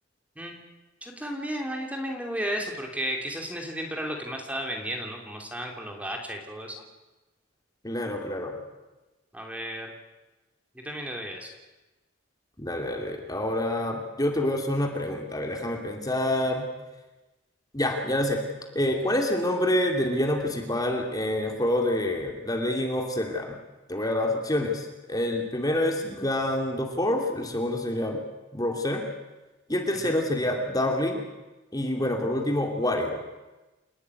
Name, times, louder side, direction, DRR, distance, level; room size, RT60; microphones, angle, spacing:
voice 1, 1.0-6.7 9.3-9.9 10.7-11.5 29.9-30.2, equal, 5° right, 1 dB, 2.9 m, -33 dB
voice 2, 7.8-8.6 12.6-16.7 17.7-18.4 18.7-23.6 23.9-28.2 28.5-29.0 29.7-31.2 31.7-33.2, left 1 dB, 20° left, 2 dB, 2.9 m, -27 dB
29.0 x 13.0 x 9.7 m, 1.1 s
head